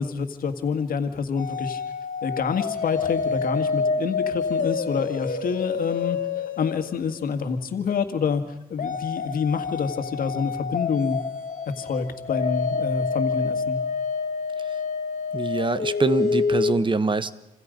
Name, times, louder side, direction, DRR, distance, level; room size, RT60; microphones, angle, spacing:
voice 1, 0.0-1.8 2.2-6.2 6.6-8.4 8.7-11.2 11.8-13.8, left 5 dB, 90° left, 7 dB, 2.0 m, -27 dB
sound 1, 1.4-7.6 8.8-16.7, left 5 dB, 70° left, 2.3 m, -28 dB
voice 2, 15.3-17.3, right 3 dB, 35° right, 13 dB, 1.3 m, -24 dB
28.5 x 26.5 x 5.3 m, 0.88 s
cardioid pair, 80°, 14 cm